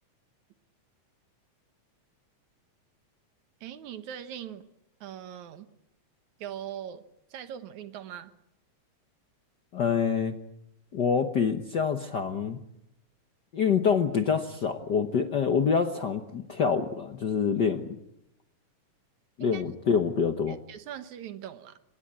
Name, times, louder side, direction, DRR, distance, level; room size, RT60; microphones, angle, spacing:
voice 1, 3.6-4.6 5.0-5.7 6.4-7.0 7.3-8.3 19.4-19.6 20.5-21.8, right 10 dB, 80° right, 11 dB, 2.7 m, -40 dB
voice 2, 9.7-10.3 10.9-12.6 13.5-18.0 19.4-20.6, left 6 dB, 55° left, 7 dB, 1.1 m, -26 dB
25.0 x 20.0 x 8.8 m, 0.83 s
omnidirectional pair, 3.3 m